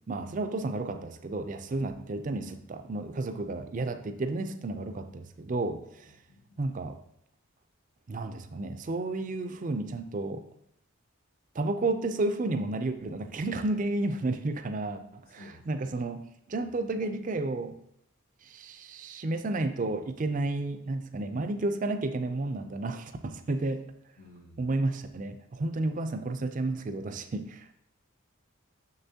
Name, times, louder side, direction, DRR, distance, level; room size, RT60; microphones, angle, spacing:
voice 1, 0.1-6.1 6.6-7.0 8.1-10.4 11.6-16.2 16.5-17.8 18.4-23.8 24.6-27.7, right 2 dB, 40° right, 8 dB, 0.4 m, -32 dB
voice 2, 6.0-6.7 15.3-15.9 16.5-16.7 21.3-21.6 24.2-24.8, left 1 dB, 80° left, -4 dB, 1.2 m, -54 dB
6.8 x 6.7 x 2.8 m, 0.74 s
head